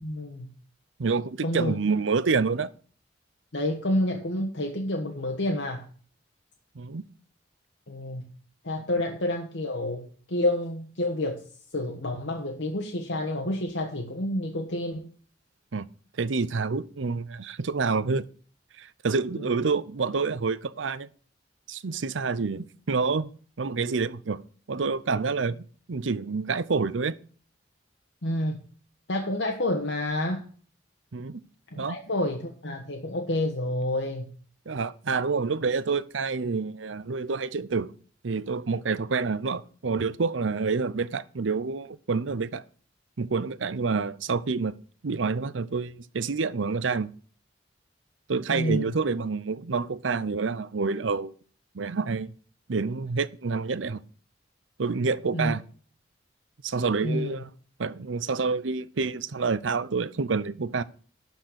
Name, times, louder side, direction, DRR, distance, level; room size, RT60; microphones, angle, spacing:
voice 1, 0.0-0.5 1.4-1.8 3.5-5.9 7.9-8.2 8.6-11.4 11.7-15.1 19.4-19.5 28.2-28.7 29.1-30.4 31.7-34.3 48.5-48.9 55.3-55.5 57.0-57.4, left 1 dB, 80° left, 1.4 m, -29 dB
voice 2, 1.0-2.7 6.8-7.1 15.7-15.9 16.2-18.3 18.8-21.1 21.7-23.3 23.6-27.1 31.1-31.4 31.8-32.0 34.7-37.9 38.2-42.6 43.2-44.8 45.0-47.1 48.3-51.3 51.7-52.3 52.7-54.0 54.8-55.6 56.6-57.5 57.8-60.8, right 4 dB, 90° right, 0.7 m, -28 dB
12.0 x 4.5 x 7.9 m
head